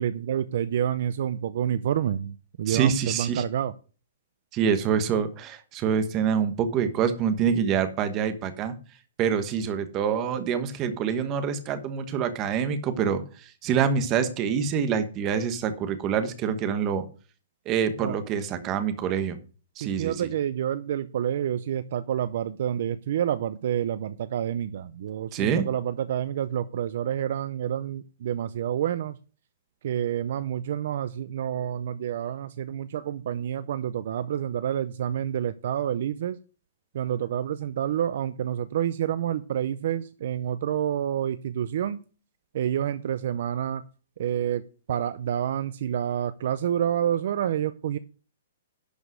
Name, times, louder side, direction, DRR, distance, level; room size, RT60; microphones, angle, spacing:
voice 1, 0.0-3.7 18.0-18.2 19.8-29.2 29.8-36.4 36.9-42.0 42.5-43.8 44.2-48.0, right 10 dB, 50° right, 14 dB, 0.5 m, -28 dB
voice 2, 2.7-3.4 4.5-8.7 9.2-13.2 13.6-17.0 17.7-19.4 19.8-20.3 25.3-25.6, right 7 dB, 20° right, 10 dB, 1.1 m, -26 dB
11.5 x 5.2 x 6.2 m, 0.36 s
hypercardioid pair, 170°, 0 cm